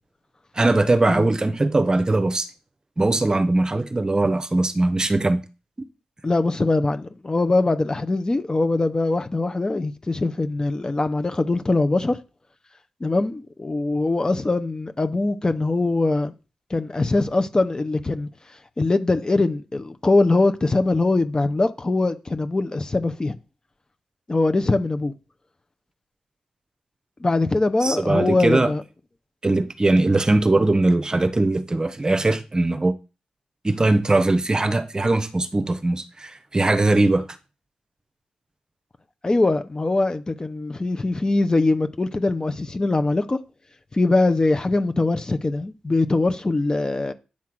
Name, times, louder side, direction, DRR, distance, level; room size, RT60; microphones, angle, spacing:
voice 1, 0.6-2.5 3.0-5.4 27.8-28.7 29.4-32.9 33.6-37.2, right 2 dB, 30° right, 0.9 m, -20 dB
voice 2, 6.2-12.2 13.0-16.3 16.7-18.3 18.8-23.3 24.3-25.1 27.2-28.8 39.2-43.4 43.9-47.1, left 2 dB, 30° left, 0.8 m, -22 dB
8.7 x 3.5 x 6.1 m
cardioid pair, 55°, 3 cm